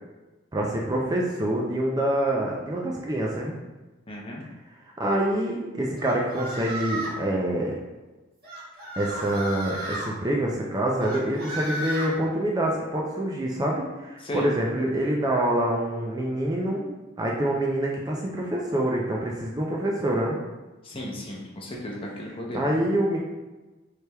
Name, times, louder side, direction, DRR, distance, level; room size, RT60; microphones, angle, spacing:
voice 1, 0.5-3.6 5.0-7.7 9.0-20.4 22.5-23.2, right 1 dB, 20° right, -2 dB, 0.3 m, -26 dB
voice 2, 4.1-4.4 14.2-14.5 20.8-22.7, equal, 25° left, -2 dB, 0.6 m, -34 dB
sound 1, 6.0-7.2 8.4-10.1 11.0-12.1, right 1 dB, 50° right, 1.3 m, -33 dB
4.3 x 3.3 x 2.2 m, 1.2 s
head